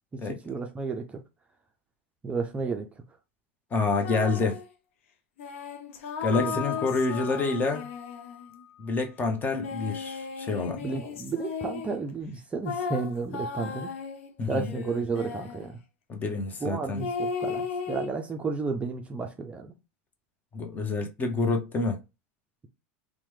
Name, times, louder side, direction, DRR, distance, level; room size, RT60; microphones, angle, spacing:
voice 1, 0.3-1.2 2.2-2.9 6.4-6.5 10.8-13.9 14.5-15.8 16.6-19.7, right 4 dB, 20° right, 0.4 m, -32 dB
voice 2, 3.7-4.6 6.2-7.8 8.8-10.8 14.4-14.7 16.1-17.1 20.5-22.0, left 3 dB, 25° left, 0.7 m, -28 dB
sound 1, 4.0-4.7 5.4-8.6 9.5-12.0 12.6-15.7 17.0-18.1, left 5 dB, 75° left, 0.6 m, -35 dB
Piano, 6.3-9.2, left 11 dB, 45° left, 1.4 m, -39 dB
2.9 x 2.1 x 3.2 m
hypercardioid pair, 110°, 7 cm